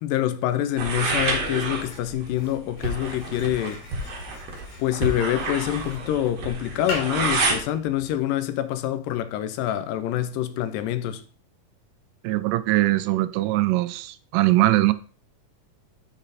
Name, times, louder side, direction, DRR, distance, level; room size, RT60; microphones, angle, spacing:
voice 1, 0.0-3.8 4.8-11.2, left 12 dB, 90° left, 2.3 m, -26 dB
sound 1, 0.8-7.6, right 3 dB, 55° right, 2.5 m, -29 dB
sound 2, 1.8-8.2, left 3 dB, 60° left, 3.4 m, -40 dB
voice 2, 12.2-14.9, right 17 dB, 85° right, 2.2 m, -21 dB
8.5 x 4.1 x 4.0 m
omnidirectional pair, 3.8 m